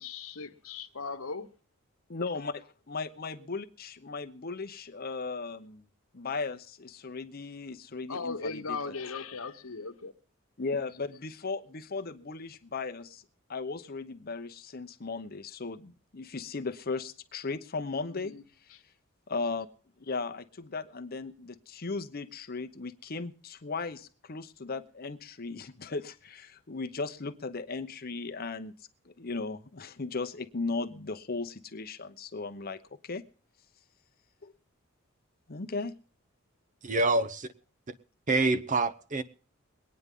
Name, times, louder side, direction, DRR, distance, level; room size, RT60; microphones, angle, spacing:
voice 1, 0.0-1.5 8.1-10.1 18.1-18.4, left 4 dB, 85° left, 1.1 m, -38 dB
voice 2, 2.1-5.8 6.1-8.9 10.6-13.2 13.5-18.3 19.3-19.7 20.0-28.7 29.0-33.2 34.4-34.5 35.5-35.9, left 4 dB, 45° left, 0.8 m, -37 dB
voice 3, 36.8-37.5 38.3-39.2, right 2 dB, 35° right, 0.7 m, -26 dB
22.5 x 9.6 x 3.7 m
head